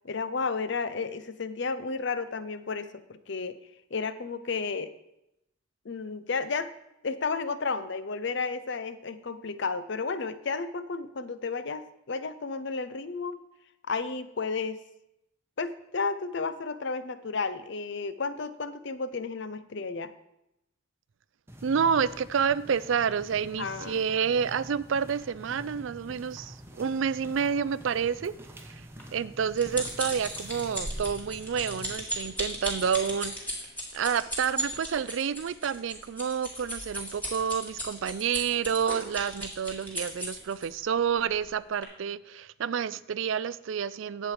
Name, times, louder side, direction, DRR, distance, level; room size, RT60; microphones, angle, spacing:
voice 1, 0.0-3.6 3.9-4.9 5.8-6.7 7.0-13.4 13.9-14.8 15.6-20.1 23.6-24.0, left 4 dB, 60° left, 13 dB, 0.6 m, -32 dB
sound 1, 21.5-31.9, equal, 10° right, 0.9 m, -45 dB
voice 2, 21.6-28.3 28.7-28.8 29.1-33.4 33.9-44.3, right 7 dB, 70° right, 17 dB, 0.4 m, -29 dB
sound 2, 29.0-40.7 41.3-41.5 41.8-41.9, equal, 10° left, 2.2 m, -36 dB
10.0 x 7.6 x 5.0 m, 0.84 s
head